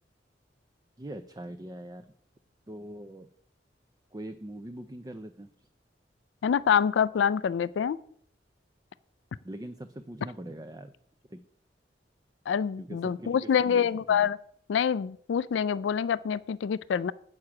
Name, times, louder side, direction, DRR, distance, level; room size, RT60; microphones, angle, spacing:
voice 1, 1.0-2.1 2.7-3.3 4.1-5.5 9.4-10.9 11.3-11.4 12.8-14.3, right 1 dB, 20° right, 9 dB, 0.4 m, -42 dB
voice 2, 6.4-8.0 12.5-14.4 14.7-17.1, left 7 dB, 85° left, 18 dB, 0.3 m, -26 dB
8.6 x 6.4 x 5.9 m, 0.63 s
head